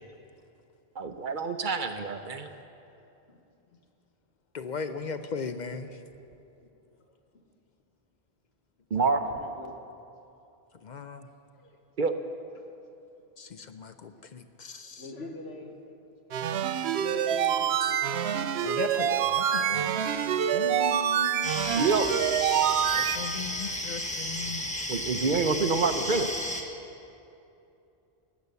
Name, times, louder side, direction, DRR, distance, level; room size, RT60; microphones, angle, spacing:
voice 1, 1.0-2.5 8.9-9.2 12.0-12.1 21.7-22.1 24.9-26.3, right 4 dB, 55° right, 8 dB, 0.8 m, -27 dB
voice 2, 4.5-6.0 10.7-11.3 13.4-15.1 18.6-21.5 22.9-24.7, left 5 dB, 55° left, 9 dB, 0.6 m, -38 dB
voice 3, 9.0-9.9 11.2-11.3 11.5-11.8 12.6-12.7 14.1-14.3 15.0-16.0 16.3-16.4 16.8-18.2 24.4-24.6, left 1 dB, 80° left, 3 dB, 1.6 m, -45 dB
sound 1, 16.3-23.2, right 9 dB, 85° right, 0.9 m, -26 dB
sound 2, 21.4-26.6, left 1 dB, 5° left, 1.1 m, -33 dB
18.5 x 8.5 x 6.8 m, 2.8 s
omnidirectional pair, 1.1 m